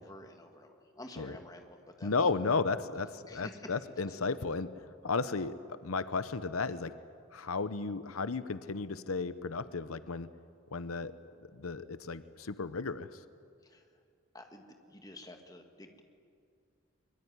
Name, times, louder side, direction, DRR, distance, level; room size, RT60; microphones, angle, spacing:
voice 1, 0.0-2.1 3.3-3.7 13.6-13.9 14.3-16.0, left 1 dB, 15° left, 4 dB, 2.0 m, -50 dB
voice 2, 2.0-4.7 5.0-5.6 5.8-6.9 7.3-10.3 10.7-11.1 11.4-13.2, left 4 dB, 85° left, 13 dB, 0.9 m, -34 dB
23.5 x 22.0 x 9.7 m, 2.3 s
head